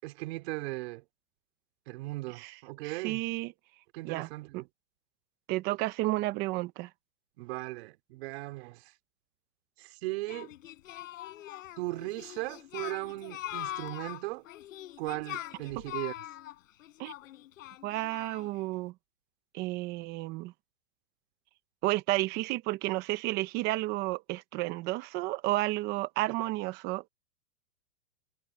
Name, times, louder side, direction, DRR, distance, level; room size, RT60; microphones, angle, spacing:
voice 1, 0.0-1.0 1.9-3.2 3.9-4.7 7.4-8.9 9.8-10.5 11.8-14.4 15.0-16.1, right 21 dB, 40° right, 4.7 m, -37 dB
voice 2, 2.8-3.5 4.0-4.3 4.5-4.6 5.5-6.9 15.7-15.8 17.0-17.1 17.8-18.9 19.5-20.5 21.8-27.1, right 19 dB, 20° right, 0.9 m, -32 dB
Singing, 10.3-18.6, left 14 dB, 60° left, 4.9 m, -42 dB
hypercardioid pair, 155°, 45 cm